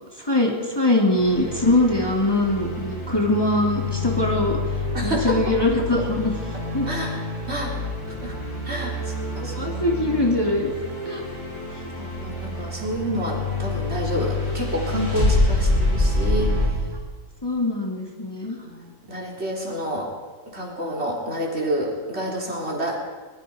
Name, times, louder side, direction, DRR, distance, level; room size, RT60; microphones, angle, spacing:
voice 1, 0.2-4.6 5.0-6.3 6.7-6.9 9.4-10.7 11.0-11.2 17.4-18.6, left 1 dB, 15° left, -1 dB, 2.9 m, -22 dB
sound 1, 1.2-16.7, left 2 dB, 50° left, 8.3 m, -27 dB
voice 2, 4.9-5.4 6.8-7.2 7.5-7.7 8.2-8.4 8.6-10.0 12.0-16.8 18.6-20.1 20.5-23.1, right 1 dB, 50° right, -1 dB, 4.1 m, -29 dB
24.5 x 21.0 x 5.1 m, 1.4 s
omnidirectional pair, 1.4 m